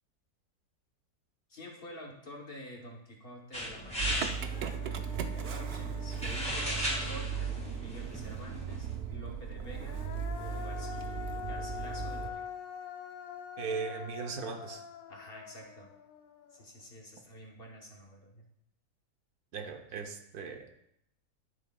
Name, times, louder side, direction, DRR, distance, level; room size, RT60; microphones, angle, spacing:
voice 1, 1.5-4.3 5.3-10.0 10.4-12.5 15.1-15.9 16.5-18.4, equal, 40° left, 0 dB, 1.1 m, -48 dB
sound 1, 3.5-9.0, equal, 5° left, 1.3 m, -38 dB
Human voice, 3.8-3.9 4.2-7.9 9.6-16.8, left 7 dB, 70° left, 1.0 m, -45 dB
Motor vehicle (road) / Engine starting, 4.0-12.3, right 7 dB, 90° right, 0.5 m, -37 dB
voice 2, 13.6-14.8 19.5-20.8, right 5 dB, 70° right, 5 dB, 1.3 m, -38 dB
12.0 x 6.4 x 2.3 m, 0.77 s
omnidirectional pair, 1.7 m